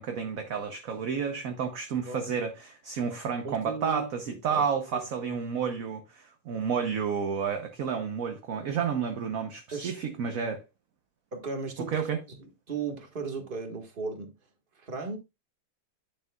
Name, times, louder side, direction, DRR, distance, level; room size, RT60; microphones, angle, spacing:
voice 1, 0.0-10.6 11.9-12.2, right 6 dB, 55° right, 1.2 m, -31 dB
voice 2, 3.4-4.6 4.9-5.4 9.7-9.9 11.3-12.0 12.4-14.3 14.7-15.2, right 4 dB, 30° right, 1.6 m, -36 dB
10.0 x 6.7 x 2.3 m
omnidirectional pair, 2.0 m